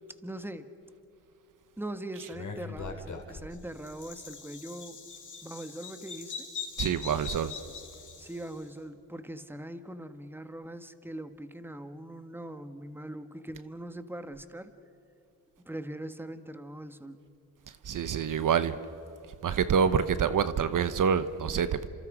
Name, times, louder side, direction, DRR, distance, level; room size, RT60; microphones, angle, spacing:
voice 1, 0.2-0.7 1.8-5.0 5.4-6.5 8.2-14.7 15.6-17.2, right 1 dB, 5° right, 9 dB, 1.6 m, -41 dB
Bird vocalization bird call bird song, 2.3-8.6, left 6 dB, 50° left, 4.1 m, -42 dB
voice 2, 6.8-7.5 17.7-18.8 19.4-21.9, right 7 dB, 55° right, 12 dB, 1.0 m, -27 dB
30.0 x 26.5 x 5.1 m, 3.0 s
cardioid pair, 70°, 37 cm